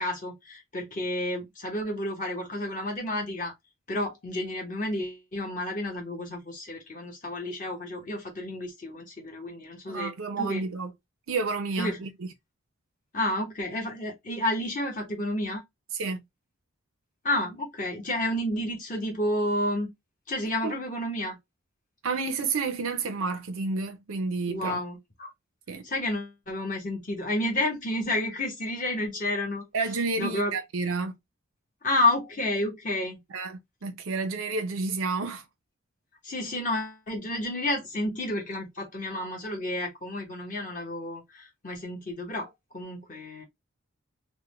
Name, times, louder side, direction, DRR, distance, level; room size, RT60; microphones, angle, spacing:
voice 1, 0.0-3.5 3.9-10.6 11.8-12.0 13.1-15.6 17.2-19.9 20.3-21.4 24.5-25.3 25.8-29.7 30.2-30.6 31.8-33.2 36.2-43.4, left 1 dB, 40° left, 0.8 m, -30 dB
voice 2, 9.9-10.9 11.3-12.3 15.9-16.2 20.6-20.7 22.0-24.8 25.7-25.8 29.7-31.1 33.3-35.4, right 4 dB, 90° right, 0.6 m, -30 dB
3.5 x 2.1 x 3.0 m
head